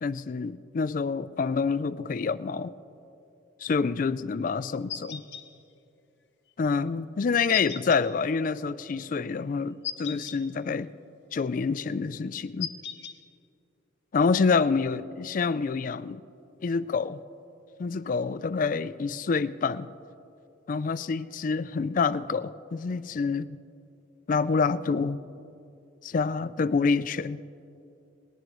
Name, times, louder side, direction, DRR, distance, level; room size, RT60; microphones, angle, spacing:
voice 1, 0.0-2.7 3.6-5.2 6.6-10.9 11.3-12.7 14.1-16.2 16.6-17.2 17.8-19.9 20.7-23.6 24.3-25.2 26.0-27.4, left 5 dB, 40° left, 0.3 m, -27 dB
sound 1, 4.9-5.4 7.5-8.0 9.8-10.4 12.6-13.2, left 9 dB, 55° left, 0.8 m, -36 dB
19.0 x 18.0 x 3.0 m
head